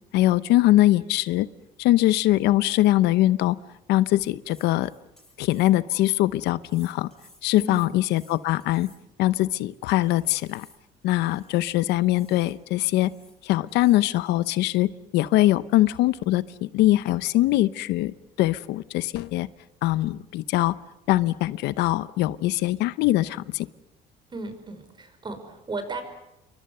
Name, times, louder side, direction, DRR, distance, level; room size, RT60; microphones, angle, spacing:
voice 1, 0.1-1.5 1.8-3.6 3.9-4.9 5.4-7.1 7.4-8.9 9.2-10.7 11.0-13.1 13.4-19.5 19.8-20.7 21.1-23.7, left 16 dB, 85° left, 16 dB, 0.8 m, -22 dB
sound 1, 3.9-6.0 6.6-9.3 9.9-11.7 12.1-12.6 12.9-13.4 13.7-14.1, left 1 dB, 5° left, 7.5 m, -56 dB
voice 2, 7.6-8.0 24.3-26.0, right 3 dB, 25° right, 8 dB, 5.4 m, -35 dB
28.5 x 23.5 x 6.8 m, 0.91 s
cardioid pair, 110°, 17 cm